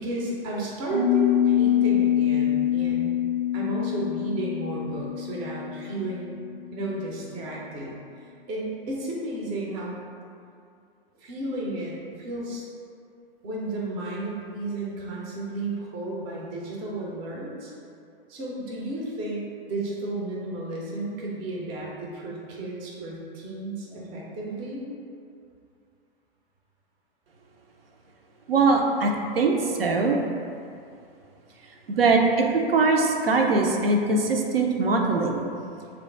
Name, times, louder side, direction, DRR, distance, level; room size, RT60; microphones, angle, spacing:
voice 1, 0.0-3.1 3.5-6.4 6.7-9.9 11.2-12.6 13.4-17.7 18.3-24.9, right 2 dB, 20° right, -3 dB, 0.4 m, -33 dB
Piano, 0.9-6.5, left 11 dB, 25° left, 0.6 m, -25 dB
voice 2, 28.5-29.5 29.8-30.2 31.9-35.4, right 3 dB, 75° right, 2 dB, 0.5 m, -21 dB
3.2 x 2.3 x 3.7 m, 2.4 s
figure-of-eight pair, 105°, 30 cm